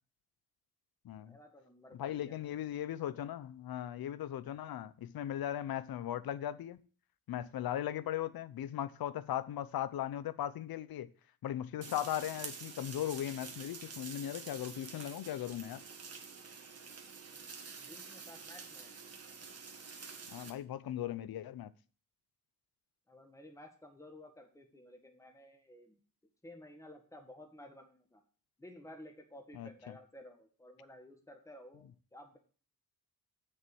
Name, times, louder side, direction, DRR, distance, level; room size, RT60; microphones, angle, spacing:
voice 1, 1.2-2.6 17.8-19.0 23.1-26.0 26.4-28.2 28.6-32.4, left 1 dB, 10° left, 1.6 m, -54 dB
voice 2, 1.9-6.8 7.3-11.1 11.4-15.8 20.3-21.7 29.5-29.7, left 11 dB, 75° left, 0.7 m, -38 dB
sound 1, 11.8-20.5, right 5 dB, 45° right, 1.7 m, -48 dB
7.7 x 6.7 x 6.0 m
cardioid pair, 110°, 36 cm